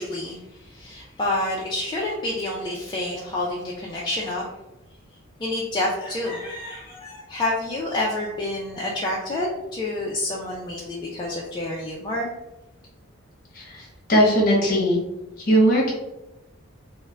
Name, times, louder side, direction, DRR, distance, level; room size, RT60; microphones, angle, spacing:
voice 1, 0.0-4.4 5.4-12.3, left 1 dB, 20° left, -5 dB, 0.3 m, -28 dB
voice 2, 14.1-15.0 15.5-15.9, equal, 40° left, -3 dB, 0.8 m, -18 dB
2.3 x 2.1 x 3.2 m, 0.95 s
head